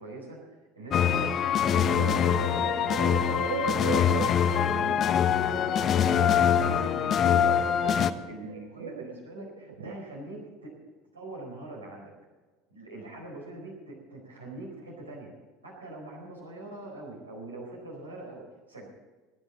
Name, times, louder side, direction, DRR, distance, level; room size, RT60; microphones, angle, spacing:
voice 1, 0.0-3.2 3.6-6.4 6.7-7.6 7.9-10.8 11.1-12.1 12.7-15.3 15.6-18.4 18.7-18.9, right 2 dB, 90° right, -1 dB, 4.4 m, -43 dB
sound 1, 0.9-8.1, left 8 dB, 45° left, 0.9 m, -24 dB
sound 2, 1.1-1.4 1.6-7.0 7.4-9.1 9.6-9.9, right 7 dB, 75° right, 0.8 m, -37 dB
19.5 x 13.0 x 4.1 m, 1.3 s
hypercardioid pair, 70°, 0 cm